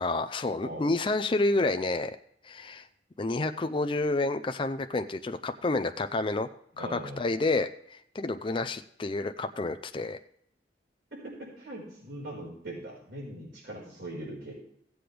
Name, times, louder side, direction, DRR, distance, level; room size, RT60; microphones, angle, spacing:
voice 1, 0.0-2.2 2.4-2.9 3.2-6.5 6.8-10.2, left 2 dB, 30° left, 8 dB, 0.4 m, -29 dB
voice 2, 6.8-7.2 11.1-14.5, right 1 dB, 65° right, -4 dB, 4.8 m, -41 dB
16.0 x 7.8 x 3.4 m, 0.70 s
head